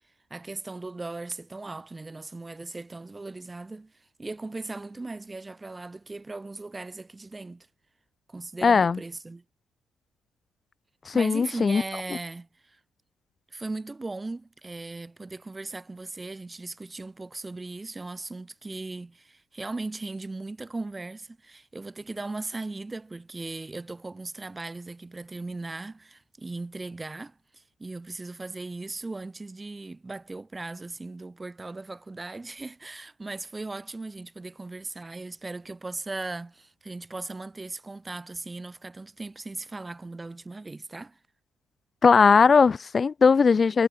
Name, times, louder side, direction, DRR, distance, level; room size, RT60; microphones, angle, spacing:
voice 1, 0.3-3.9 4.2-7.7 8.3-9.4 11.1-12.8 13.5-41.2, right 3 dB, 20° right, 3.2 m, -38 dB
voice 2, 8.6-9.0 11.1-11.8 42.0-43.9, left 5 dB, 40° left, 0.3 m, -19 dB
cardioid pair, 90°, 0 cm